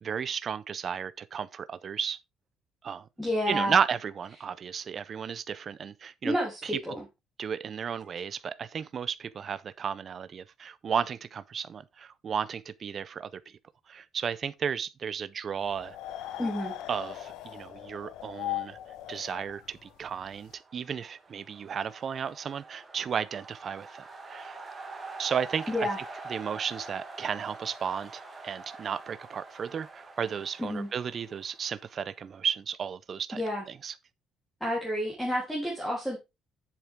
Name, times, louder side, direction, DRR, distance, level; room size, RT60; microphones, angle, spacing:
voice 1, 0.0-2.2 2.8-3.1 3.5-6.3 6.6-6.7 7.4-13.3 13.9-16.0 16.9-18.8 19.1-24.6 25.2-25.7 26.3-33.4 33.8-33.9, right 7 dB, 35° right, 0.5 m, -33 dB
voice 2, 3.2-3.8 6.2-7.0 16.4-16.7 25.7-26.0 30.6-30.9 33.3-33.7 34.6-36.2, equal, ahead, 3.3 m, -30 dB
sound 1, 15.6-20.5, left 13 dB, 80° left, 1.1 m, -39 dB
sound 2, 20.2-32.2, right 3 dB, 20° right, 2.0 m, -45 dB
8.5 x 7.5 x 3.6 m
cardioid pair, 160°, 0 cm